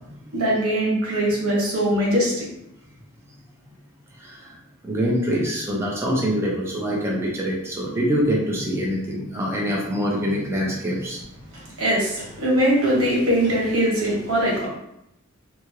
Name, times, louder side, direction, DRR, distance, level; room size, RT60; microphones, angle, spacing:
voice 1, 0.3-2.5 11.5-14.7, equal, 85° right, -5 dB, 1.1 m, -21 dB
voice 2, 4.2-4.5 4.8-11.2, equal, 10° right, -3 dB, 0.5 m, -24 dB
2.7 x 2.3 x 3.0 m, 0.82 s
head